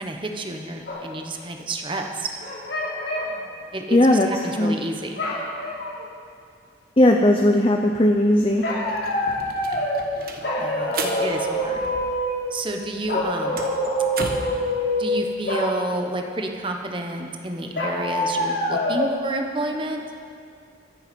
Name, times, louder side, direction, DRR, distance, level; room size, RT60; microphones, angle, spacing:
voice 1, 0.0-2.3 3.7-5.2 9.2-9.4 10.6-11.9 12.5-13.6 15.0-20.0, right 1 dB, 25° right, 3 dB, 1.1 m, -30 dB
sound 1, 0.9-1.1 2.4-3.4 5.2-6.1 8.6-10.1 10.4-12.5 13.1-15.2 15.5-15.8 17.8-19.1, left 1 dB, 75° left, 3.7 m, -25 dB
voice 2, 3.9-4.3 4.6-4.7 7.0-8.6, left 1 dB, 30° left, 2 dB, 0.7 m, -17 dB
sound 2, 8.1-8.2 8.5-12.4 12.7-14.6, right 3 dB, 50° right, 1.4 m, -35 dB
24.0 x 8.0 x 5.3 m, 2.3 s
head